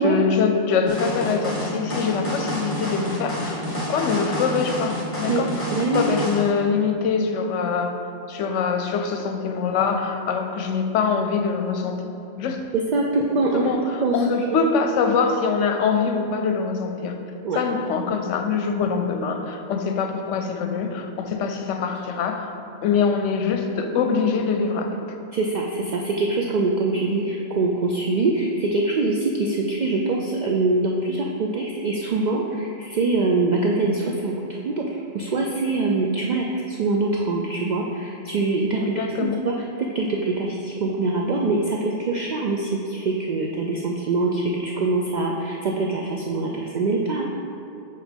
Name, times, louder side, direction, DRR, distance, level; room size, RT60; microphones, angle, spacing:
voice 1, 0.0-5.7 5.9-8.0 8.3-12.6 13.5-17.2 17.5-22.5 22.8-25.0 38.8-39.4, left 5 dB, 80° left, 5 dB, 0.9 m, -24 dB
sound 1, 0.9-6.4, equal, 10° left, 1.3 m, -29 dB
voice 2, 5.7-6.0 12.9-13.7 14.0-14.2 14.5-14.7 17.4-17.6 25.3-47.2, right 3 dB, 70° right, -1 dB, 0.4 m, -24 dB
5.0 x 4.4 x 5.2 m, 2.7 s
omnidirectional pair, 1.3 m